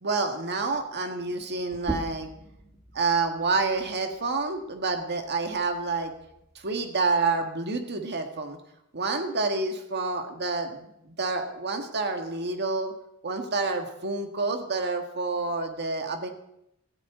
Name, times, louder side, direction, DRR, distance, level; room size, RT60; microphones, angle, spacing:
voice 1, 0.0-2.3 2.9-6.1 6.6-8.6 8.9-12.9 13.2-16.3, right 3 dB, 50° right, 5 dB, 1.9 m, -28 dB
sound 1, 1.7-6.9, right 1 dB, 10° right, 1.4 m, -41 dB
17.5 x 15.0 x 3.9 m, 0.79 s
head